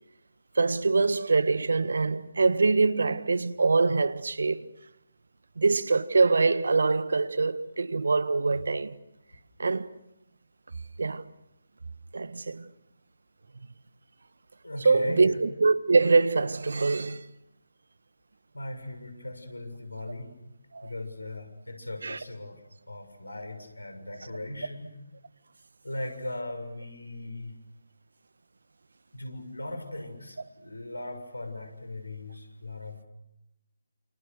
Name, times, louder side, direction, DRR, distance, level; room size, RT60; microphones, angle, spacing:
voice 1, 0.6-4.7 5.6-8.9 9.6-9.9 11.0-11.2 12.1-12.7 14.8-17.2 20.7-20.9 22.0-22.2, right 3 dB, 65° right, 1.5 m, -24 dB
voice 2, 14.6-15.4 18.5-20.3 20.8-24.9 25.8-27.6 29.1-33.0, left 1 dB, 85° left, 7.1 m, -39 dB
29.5 x 29.0 x 6.6 m
figure-of-eight pair, 145°, 0 cm